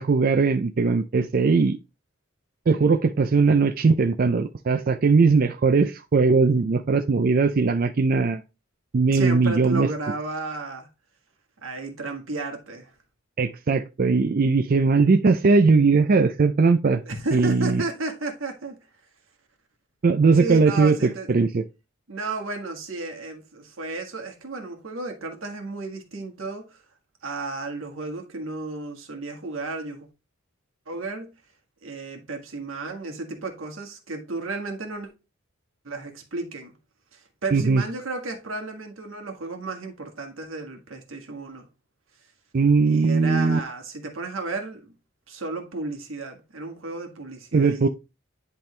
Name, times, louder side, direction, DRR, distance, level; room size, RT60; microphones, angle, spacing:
voice 1, 0.0-1.8 2.7-8.4 8.9-9.9 13.4-17.0 17.3-17.8 20.0-21.6 37.5-37.8 42.5-43.6 47.5-47.9, right 4 dB, 45° right, 0.4 m, -19 dB
voice 2, 9.1-10.9 11.6-12.9 17.0-18.7 20.3-21.3 22.1-26.8 27.2-30.1 30.9-31.3 31.8-35.1 35.8-36.8 37.1-41.7 42.8-44.9 45.3-47.9, right 3 dB, 80° right, 1.7 m, -33 dB
10.5 x 3.6 x 3.2 m
head